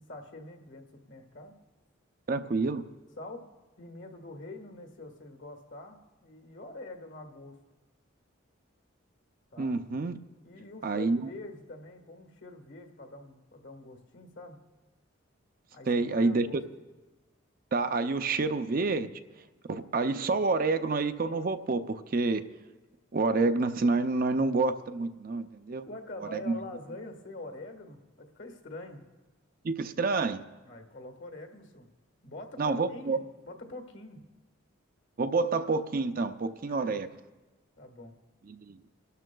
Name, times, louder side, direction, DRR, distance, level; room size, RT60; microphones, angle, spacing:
voice 1, 0.0-1.6 3.2-3.4 3.8-7.6 9.5-9.8 10.4-14.6 15.7-16.6 25.9-29.0 30.6-31.9 32.2-34.2 36.7-37.0 37.7-38.1, left 2 dB, 60° left, 5 dB, 1.5 m, -45 dB
voice 2, 2.3-2.8 9.6-10.2 10.8-11.3 15.8-16.6 17.7-19.1 19.7-22.4 23.1-25.9 26.3-26.5 29.6-30.4 32.6-33.2 35.2-37.1 38.5-38.8, right 3 dB, 45° right, 10 dB, 0.5 m, -28 dB
29.0 x 12.5 x 2.3 m, 1.2 s
head